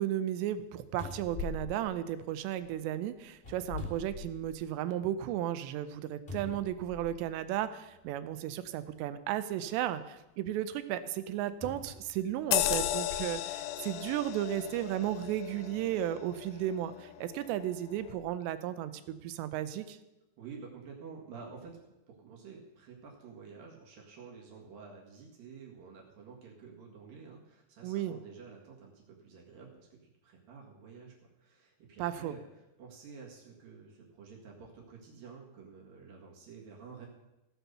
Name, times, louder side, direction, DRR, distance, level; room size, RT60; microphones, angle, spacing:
voice 1, 0.0-20.0 27.8-28.2 32.0-32.4, right 12 dB, 80° right, 12 dB, 2.8 m, -34 dB
sound 1, 0.6-0.7 1.0-2.7 3.4-4.8 5.2-5.3 6.3-7.4 8.3-8.4 11.6-13.3 13.9-14.1, left 4 dB, 50° left, 0.6 m, -43 dB
sound 2, 12.5-17.5 17.9-18.1, left 13 dB, 80° left, 2.4 m, -35 dB
voice 2, 20.4-21.8 22.1-32.4 32.8-37.1, right 5 dB, 60° right, -1 dB, 3.1 m, -50 dB
16.5 x 6.2 x 6.8 m, 0.98 s
omnidirectional pair, 5.2 m